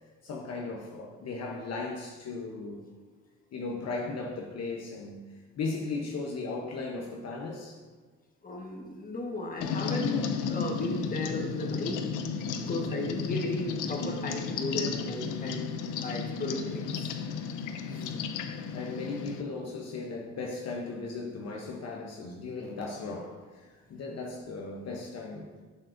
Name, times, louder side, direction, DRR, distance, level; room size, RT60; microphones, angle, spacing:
voice 1, 0.2-2.8 3.5-5.2 5.6-7.8 12.9-13.1 16.3-16.6 17.9-18.3 18.7-25.5, left 3 dB, 55° left, 0 dB, 0.9 m, -37 dB
voice 2, 8.4-12.0 12.6-15.7 16.0-16.9 17.9-18.1, left 2 dB, 30° left, 0 dB, 1.3 m, -35 dB
sound 1, 9.6-19.4, left 6 dB, 85° left, 0.6 m, -33 dB
7.4 x 7.4 x 2.6 m, 1.4 s
cardioid pair, 90°, 30 cm